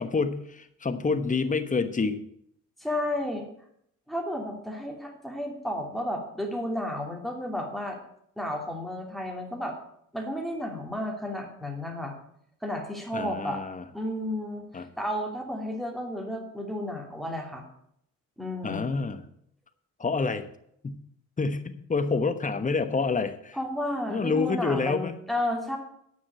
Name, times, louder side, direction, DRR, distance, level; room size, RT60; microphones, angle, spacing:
voice 1, 0.0-2.2 13.1-13.8 14.7-14.9 18.6-19.2 20.0-20.5 20.8-21.0 21.4-23.6 24.1-25.2, left 4 dB, 25° left, 10 dB, 1.1 m, -28 dB
voice 2, 2.8-3.5 4.1-8.0 8.4-9.8 10.1-12.1 12.6-13.6 13.9-17.6 18.4-19.1 23.5-25.8, left 1 dB, ahead, 1 dB, 2.8 m, -32 dB
9.6 x 6.1 x 8.6 m, 0.72 s
cardioid pair, 90°, 30 cm